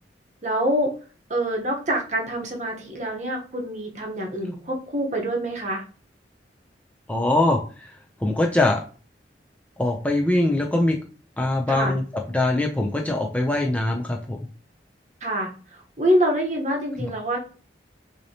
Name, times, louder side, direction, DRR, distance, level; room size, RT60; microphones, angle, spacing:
voice 1, 0.4-0.9 1.3-5.8 11.7-11.9 15.2-17.5, equal, 40° right, 1 dB, 1.0 m, -25 dB
voice 2, 7.1-8.8 9.8-11.0 11.4-14.4 17.0-17.1, left 2 dB, 10° left, 1 dB, 0.4 m, -23 dB
6.3 x 2.8 x 2.8 m, 0.38 s
head